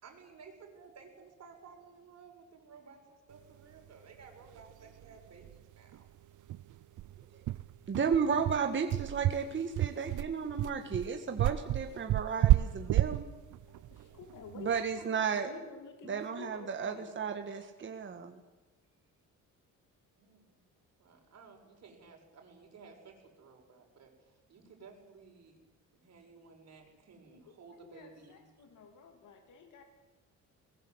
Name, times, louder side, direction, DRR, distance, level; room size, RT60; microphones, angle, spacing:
voice 1, 0.0-6.1 12.3-13.1 13.9-14.2 20.1-20.6 21.0-25.6 25.9-28.5, right 5 dB, 55° right, 2 dB, 6.5 m, -56 dB
sound 1, 4.6-4.7 5.0-5.1 5.4-5.6 5.9-6.0 6.5-14.9, right 15 dB, 70° right, 0.6 m, -30 dB
voice 2, 7.9-13.2 14.6-15.5 16.1-18.3, right 6 dB, 35° right, 5 dB, 1.8 m, -33 dB
voice 3, 13.7-17.1 27.3-29.8, left 5 dB, 65° left, 4 dB, 3.1 m, -51 dB
22.0 x 20.0 x 8.1 m, 1.1 s
cardioid pair, 120°, 32 cm